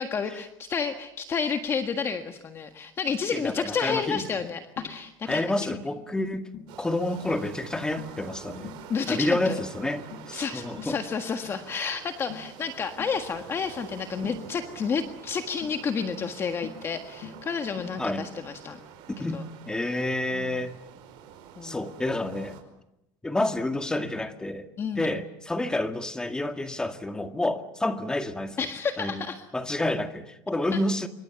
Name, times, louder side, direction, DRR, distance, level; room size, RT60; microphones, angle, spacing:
voice 1, 0.0-5.8 8.9-9.6 10.3-18.8 19.3-19.4 20.3-20.6 21.6-21.8 24.8-25.1 28.6-29.4 30.7-30.8, left 6 dB, 30° left, 6 dB, 1.6 m, -30 dB
Tap, 3.1-3.3 3.9-4.1 4.8-5.0 5.3-5.5 6.0-6.2 6.5-6.8 7.3-7.5 8.0-8.2 8.6-8.9 9.4-9.7 10.1-10.4 10.8-11.0 11.4-11.6 12.3-12.5 13.0-13.2 14.2-14.5 15.6-15.8 16.6-16.9 17.2-17.5 17.8-18.0, left 7 dB, 60° left, 5.1 m, -43 dB
voice 2, 3.3-4.2 5.3-6.5 6.8-8.7 9.1-11.0 18.0-18.2 19.1-20.7 21.6-22.6 23.2-24.7 24.9-28.7 29.0-29.2 29.5-31.1, left 1 dB, 10° left, 7 dB, 2.0 m, -29 dB
Northsea at St Cyrus, 6.7-22.6, right 9 dB, 75° right, 5.2 m, -47 dB
27.0 x 24.0 x 7.1 m, 0.85 s
cardioid pair, 145°, 8 cm